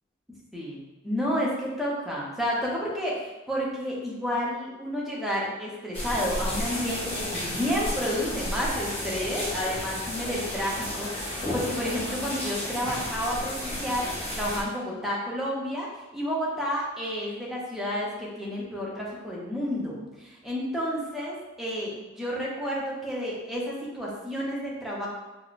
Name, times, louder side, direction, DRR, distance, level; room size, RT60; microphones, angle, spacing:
voice 1, 0.5-14.1 14.4-25.1, equal, ahead, -5 dB, 0.6 m, -31 dB
sound 1, 5.9-14.6, left 1 dB, 30° left, 1.0 m, -32 dB
4.7 x 2.1 x 2.4 m, 1.1 s
head